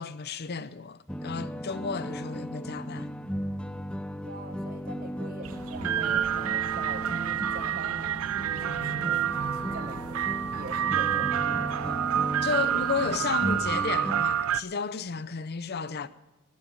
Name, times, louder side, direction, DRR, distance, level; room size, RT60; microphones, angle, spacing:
voice 1, 0.0-3.1 12.4-16.1, left 5 dB, 45° left, 0.6 m, -33 dB
sound 1, 1.1-14.2, equal, 5° left, 0.4 m, -36 dB
Wind instrument woodwind instrument, 4.2-13.9, equal, 20° left, 3.8 m, -61 dB
voice 2, 4.2-8.2 8.6-9.2 9.7-10.2 10.5-12.0, right 2 dB, 40° right, 1.1 m, -43 dB
sound 2, 5.4-14.6, right 10 dB, 75° right, 0.4 m, -28 dB
18.5 x 6.3 x 9.1 m
head